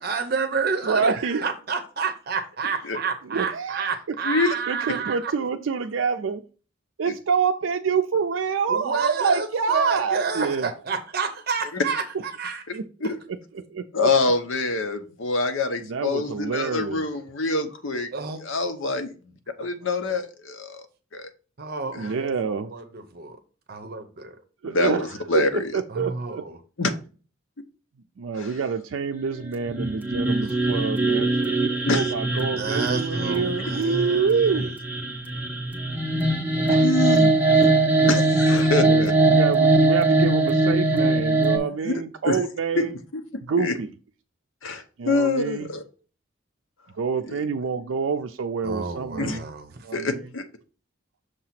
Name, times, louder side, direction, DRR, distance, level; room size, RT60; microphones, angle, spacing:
voice 1, 0.0-5.3 8.7-12.6 18.1-18.4 19.6-19.7 20.1-20.2 21.6-22.3 22.6-23.4 23.7-24.4 25.9-26.6 30.4-30.5 32.6-34.7 48.6-49.7, right 5 dB, 50° right, 0.7 m, -30 dB
voice 2, 0.8-1.4 3.2-3.9 4.7-6.4 7.0-10.7 12.7-13.1 13.5-14.1 15.8-17.0 22.0-22.7 24.6-25.1 25.5-26.4 28.2-34.7 36.7-36.9 38.9-42.9 43.5-43.9 45.0-45.7 46.9-49.4 49.8-50.3, right 5 dB, 80° right, 0.4 m, -27 dB
voice 3, 4.2-4.5 7.1-7.2 11.7-11.8 13.0-13.2 13.9-18.1 18.4-19.1 19.6-20.9 21.1-21.3 21.9-22.1 24.6-25.0 25.3-25.7 26.8-26.9 28.4-28.5 31.8-32.1 36.8-37.7 38.0-39.1 41.5-42.4 42.8-43.7 44.6-45.8 47.3-47.4 49.2-49.4 49.9-50.4, left 3 dB, 80° left, 0.9 m, -26 dB
sound 1, 29.7-41.6, right 2 dB, 10° right, 0.8 m, -21 dB
6.5 x 2.8 x 5.7 m
head